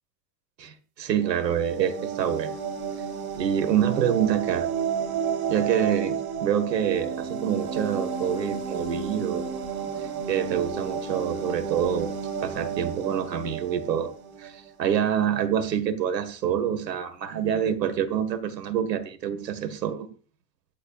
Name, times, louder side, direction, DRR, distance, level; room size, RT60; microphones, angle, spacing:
voice 1, 0.6-2.5 3.4-4.7 5.5-6.1 6.4-9.5 10.3-12.1 12.4-14.1 14.4-20.1, right 9 dB, 85° right, 1.8 m, -26 dB
sound 1, 1.1-14.7, right 7 dB, 50° right, 3.8 m, -32 dB
24.5 x 9.1 x 2.4 m
hypercardioid pair, 90°, 48 cm